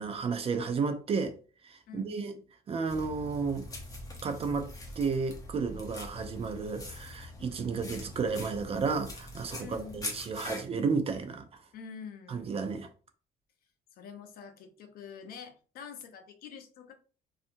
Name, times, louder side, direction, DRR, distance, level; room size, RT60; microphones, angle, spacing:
voice 1, 0.0-1.3 1.6-2.4 2.7-3.7 4.2-4.7 5.0-11.4 12.3-12.9, right 5 dB, 35° right, 0.4 m, -32 dB
voice 2, 1.9-2.2 9.6-10.0 11.7-12.7 13.9-16.9, left 7 dB, 65° left, 0.6 m, -46 dB
sound 1, 2.9-10.7, left 2 dB, 20° left, 0.8 m, -43 dB
2.6 x 2.4 x 2.6 m
cardioid pair, 110°, 17 cm